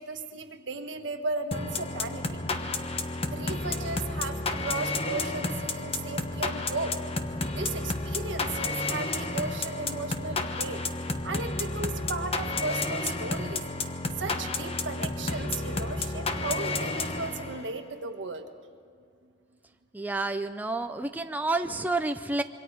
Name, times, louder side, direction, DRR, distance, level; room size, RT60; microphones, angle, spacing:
voice 1, 0.0-2.4 3.3-5.5 5.8-7.0 7.6-10.8 11.2-13.6 14.2-18.5, right 3 dB, 75° right, 6 dB, 1.5 m, -35 dB
sound 1, 1.5-17.8, left 2 dB, 35° left, 1.1 m, -31 dB
voice 2, 19.9-22.4, right 2 dB, 10° right, 7 dB, 0.6 m, -29 dB
26.5 x 23.5 x 4.7 m, 2.3 s
head